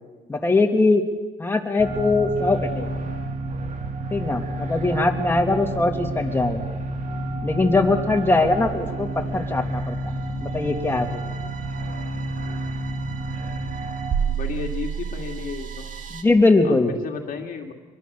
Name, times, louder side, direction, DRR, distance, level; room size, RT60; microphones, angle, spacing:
voice 1, 0.3-1.0 1.4-2.9 4.1-6.6 7.4-11.2 16.1-17.0, left 2 dB, 15° left, 3 dB, 2.8 m, -21 dB
sound 1, 1.8-16.2, right 3 dB, 50° right, 2.1 m, -29 dB
voice 2, 14.2-15.9 16.6-17.7, left 5 dB, 55° left, 2 dB, 2.4 m, -33 dB
25.0 x 21.5 x 6.9 m, 1.3 s
cardioid pair, 110°, 17 cm